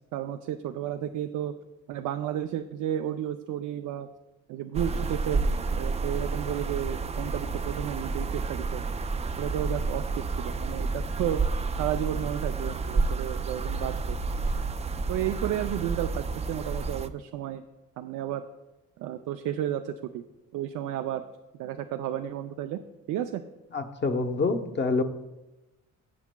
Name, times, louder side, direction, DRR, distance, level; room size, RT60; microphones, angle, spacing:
voice 1, 0.1-1.5 1.9-4.1 4.5-8.8 9.4-10.0 10.4-11.4 11.8-14.2 15.1-17.6 18.0-18.4 19.0-20.2 20.5-21.2 21.6-22.8 23.1-23.4, right 11 dB, 90° right, 7 dB, 0.5 m, -32 dB
sound 1, 4.7-17.1, right 4 dB, 20° right, 0.4 m, -30 dB
voice 2, 23.7-25.0, left 3 dB, 35° left, 7 dB, 0.9 m, -26 dB
15.5 x 7.1 x 2.2 m, 1.0 s
cardioid pair, 90°, 30 cm